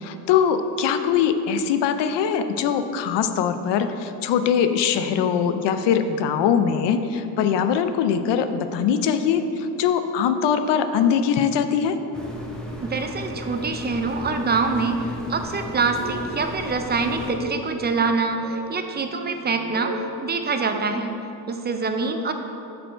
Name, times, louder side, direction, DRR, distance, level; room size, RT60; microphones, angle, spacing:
voice 1, 0.0-12.0, left 7 dB, 80° left, 9 dB, 0.6 m, -22 dB
sound 1, 12.1-17.3, equal, ahead, 0.7 m, -35 dB
voice 2, 12.8-21.1 21.5-22.3, right 4 dB, 25° right, 6 dB, 0.4 m, -25 dB
sound 2, 15.9-16.7 17.2-17.6 18.1-18.6 19.4-20.1, right 3 dB, 85° right, 1.2 m, -37 dB
6.3 x 5.2 x 4.5 m, 2.8 s
cardioid pair, 115°, 42 cm